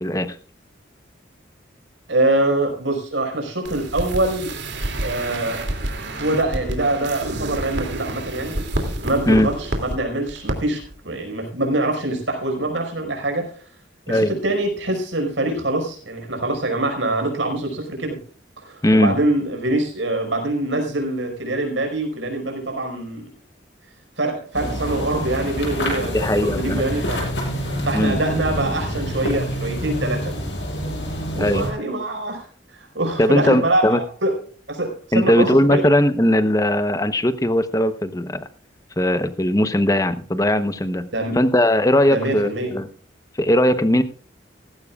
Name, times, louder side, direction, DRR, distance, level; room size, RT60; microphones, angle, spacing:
voice 1, 0.0-0.4 9.3-9.5 14.1-14.3 18.8-19.2 26.1-26.8 27.9-28.2 31.4-31.7 33.2-34.0 35.1-38.5 39.0-41.1 41.3-42.9 43.4-44.0, left 1 dB, 20° left, 11 dB, 0.8 m, -19 dB
voice 2, 2.1-4.6 5.0-5.7 6.2-8.6 9.0-13.6 14.1-18.2 18.6-23.3 24.2-27.2 27.8-30.3 31.3-34.4 34.7-35.8 41.1-41.4 42.1-42.7, right 2 dB, 85° right, 3 dB, 5.1 m, -24 dB
sound 1, 3.6-10.0 10.3-10.5 10.8-10.9, right 1 dB, 70° right, 2.6 m, -28 dB
sound 2, 24.5-31.7, equal, 75° left, 7.8 m, -27 dB
17.5 x 15.5 x 2.4 m, 0.41 s
head